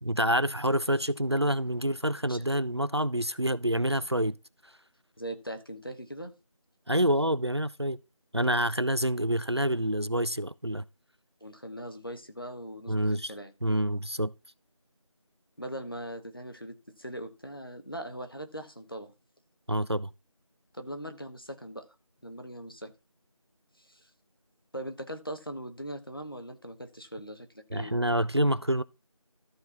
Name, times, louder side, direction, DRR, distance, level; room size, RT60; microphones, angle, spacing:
voice 1, 0.0-4.4 6.9-8.0 8.3-10.8 12.9-13.3 13.6-14.3 19.7-20.1 27.7-28.8, right 1 dB, 50° right, 0.4 m, -27 dB
voice 2, 5.2-6.3 11.4-13.5 15.6-19.1 20.7-21.9 22.2-22.9 23.8-24.1 24.7-27.9, right 1 dB, 40° left, 1.2 m, -40 dB
13.0 x 4.5 x 6.0 m
figure-of-eight pair, 180°, 18 cm